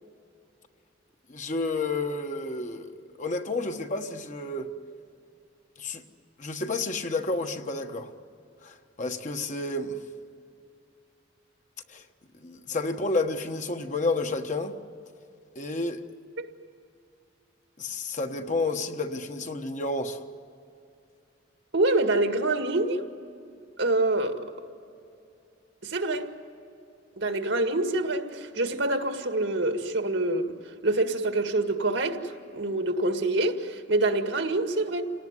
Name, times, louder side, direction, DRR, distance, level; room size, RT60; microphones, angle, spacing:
voice 1, 1.3-4.7 5.8-6.0 6.4-8.1 8.6-10.0 11.9-12.0 12.4-14.8 15.5-16.0 17.8-20.2, left 2 dB, 40° left, 1.4 m, -30 dB
voice 2, 21.7-23.0 23.8-24.5 25.8-26.3 27.2-30.5 30.8-35.0, right 2 dB, 75° right, 2.0 m, -26 dB
28.5 x 18.5 x 9.8 m
head